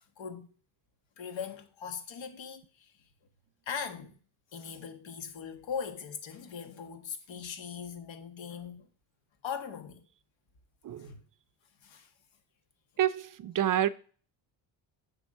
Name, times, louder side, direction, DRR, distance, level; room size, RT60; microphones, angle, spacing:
voice 1, 0.2-0.5 1.2-2.9 3.7-4.2 4.5-8.9 9.4-10.0 11.0-11.2 11.8-12.1, left 7 dB, 70° left, 1.5 m, -40 dB
voice 2, 13.0-13.9, right 11 dB, 45° right, 0.5 m, -28 dB
8.3 x 3.4 x 6.4 m
cardioid pair, 100°, 47 cm